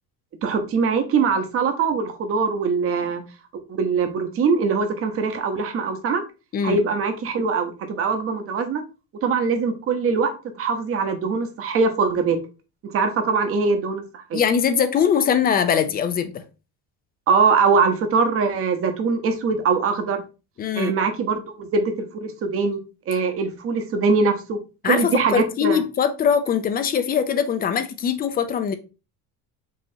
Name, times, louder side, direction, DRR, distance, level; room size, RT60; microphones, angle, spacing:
voice 1, 0.4-3.2 3.8-6.2 6.6-8.8 9.2-12.4 12.8-14.4 17.3-20.2 20.8-22.8 23.1-24.6 24.9-25.8, right 5 dB, 40° right, 0.8 m, -22 dB
voice 2, 14.3-16.4 20.6-20.9 24.8-28.8, left 7 dB, 25° left, 0.4 m, -22 dB
5.5 x 2.9 x 2.7 m
cardioid pair, 145°, 37 cm